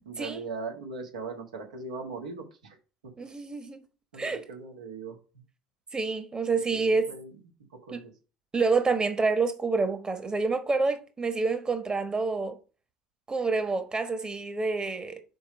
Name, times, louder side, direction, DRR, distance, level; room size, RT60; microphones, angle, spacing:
voice 1, 0.0-2.8 4.1-5.2 6.5-7.3 7.7-8.1, right 4 dB, 75° right, 1.6 m, -39 dB
voice 2, 3.2-3.8 4.1-4.4 5.9-7.1 7.9-8.0 8.5-12.6 13.3-15.2, right 4 dB, 20° right, 1.3 m, -28 dB
5.3 x 4.6 x 6.0 m
figure-of-eight pair, 60°, 4 cm